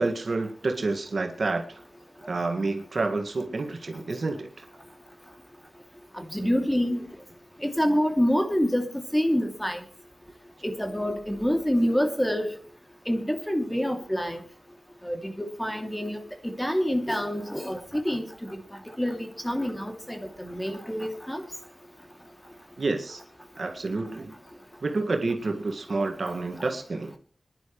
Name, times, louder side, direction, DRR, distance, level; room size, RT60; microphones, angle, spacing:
voice 1, 0.0-1.8 2.3-4.6 22.8-23.2 23.6-24.3 24.8-27.2, right 3 dB, 70° right, 4 dB, 1.9 m, -29 dB
voice 2, 6.1-7.1 7.6-9.8 10.6-12.5 13.1-14.4 15.0-18.6 19.0-21.5 26.3-26.4, equal, 10° left, 5 dB, 2.7 m, -27 dB
26.0 x 11.0 x 3.2 m, 0.41 s
cardioid pair, 50°, 0 cm